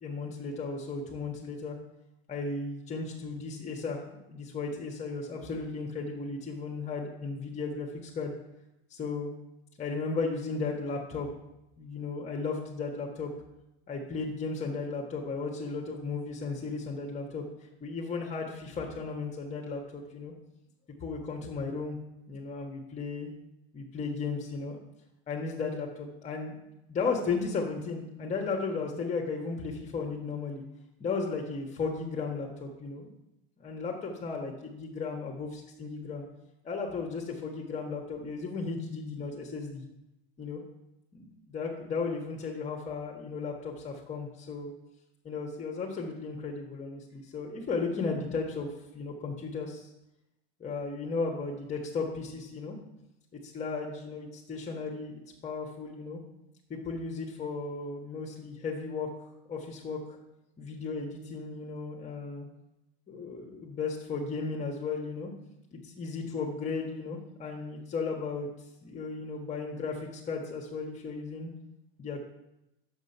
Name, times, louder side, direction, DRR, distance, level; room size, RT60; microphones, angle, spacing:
voice 1, 0.0-1.8 2.3-8.3 8.9-9.3 9.8-11.3 11.8-13.3 13.9-17.4 17.8-20.3 21.0-22.0 22.3-23.3 23.7-24.8 25.3-26.5 26.9-30.6 31.0-33.1 33.6-36.3 36.6-39.8 40.4-40.6 41.1-44.7 45.2-49.9 50.6-52.8 53.4-56.2 56.7-60.2 60.6-62.5 63.1-65.3 65.7-68.5 68.8-71.5 72.0-72.2, left 4 dB, 25° left, 0 dB, 1.2 m, -35 dB
6.6 x 5.3 x 5.4 m, 0.88 s
hypercardioid pair, 105°, 30 cm